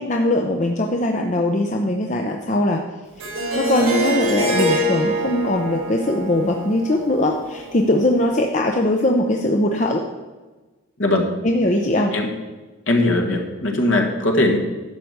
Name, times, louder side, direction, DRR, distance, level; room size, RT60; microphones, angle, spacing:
voice 1, 0.0-2.8 3.5-10.0 11.4-12.1, left 1 dB, 35° left, 2 dB, 0.7 m, -20 dB
Harp, 3.2-8.2, equal, 75° right, 3.8 m, -25 dB
voice 2, 11.0-11.3 12.1-12.3 12.9-14.6, left 1 dB, 60° left, 2 dB, 1.7 m, -19 dB
11.5 x 5.0 x 8.0 m, 1.2 s
head